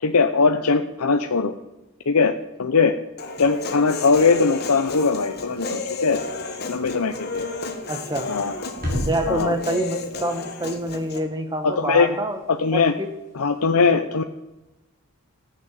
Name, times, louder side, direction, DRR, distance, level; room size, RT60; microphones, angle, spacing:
voice 1, 0.0-1.5 2.1-2.3 2.6-2.9 3.4-6.2 6.7-7.4 8.3-8.5 9.3-9.5 11.6-12.1 12.5-12.9 13.3-14.2, left 4 dB, 85° left, 6 dB, 0.8 m, -20 dB
Human voice, 3.2-11.2, left 3 dB, 45° left, 1.6 m, -32 dB
sound 1, 4.7-13.6, equal, 40° right, 5.7 m, -37 dB
voice 2, 7.9-8.3 9.1-12.4 12.7-13.1, right 1 dB, 20° right, 7 dB, 1.4 m, -26 dB
14.0 x 8.7 x 7.4 m, 1.0 s
head